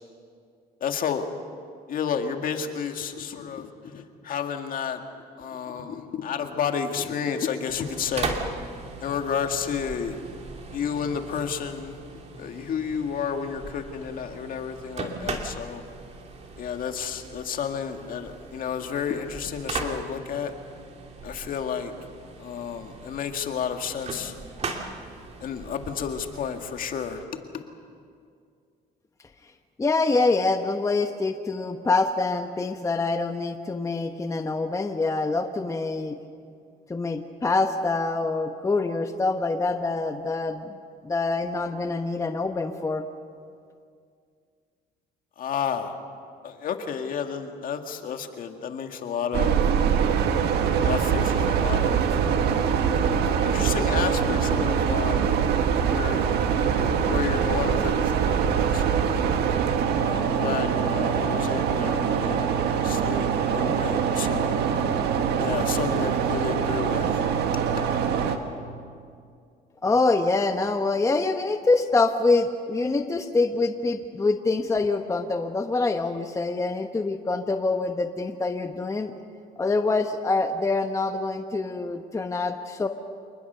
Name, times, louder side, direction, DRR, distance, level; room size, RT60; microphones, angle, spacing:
voice 1, 0.8-1.3 1.9-5.0 5.4-8.4 9.0-10.2 10.7-12.0 12.4-15.8 16.6-20.5 21.2-21.9 22.4-24.3 25.4-27.2 45.4-45.9 46.4-49.6 50.8-52.0 52.3-52.6 52.9-55.4 55.9-56.4 56.8-59.1 60.0-63.3 63.5-64.6 65.4-67.1, left 7 dB, 55° left, 5 dB, 2.1 m, -31 dB
sound 1, 7.7-27.2, right 3 dB, 40° right, 2.7 m, -38 dB
voice 2, 29.8-36.2 36.9-40.8 41.0-43.1 69.8-79.1 79.6-82.9, left 3 dB, 20° left, 6 dB, 1.0 m, -25 dB
sound 2, 49.3-68.4, right 7 dB, 75° right, 1.8 m, -23 dB
27.5 x 20.0 x 6.9 m, 2.3 s
cardioid pair, 110°, 17 cm